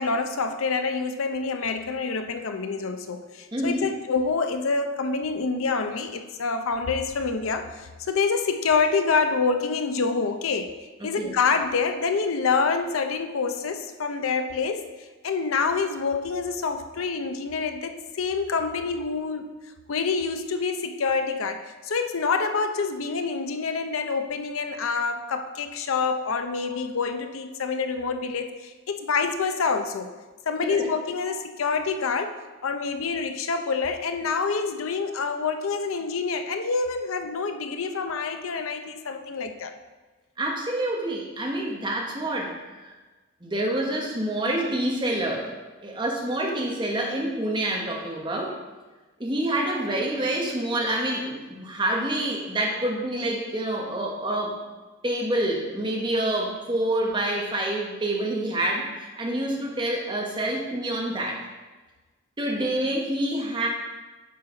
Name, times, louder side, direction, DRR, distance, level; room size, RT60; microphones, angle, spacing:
voice 1, 0.0-10.7 11.0-14.9 15.2-19.5 19.9-30.1 30.5-39.7, left 4 dB, 85° left, 7 dB, 0.6 m, -27 dB
voice 2, 3.5-3.9 11.2-11.3 30.6-30.9 40.4-43.0 43.4-45.5 45.8-48.6 49.2-54.6 55.0-61.4 62.4-63.7, right 1 dB, 20° right, -1 dB, 1.2 m, -27 dB
9.2 x 5.6 x 3.9 m, 1.2 s
head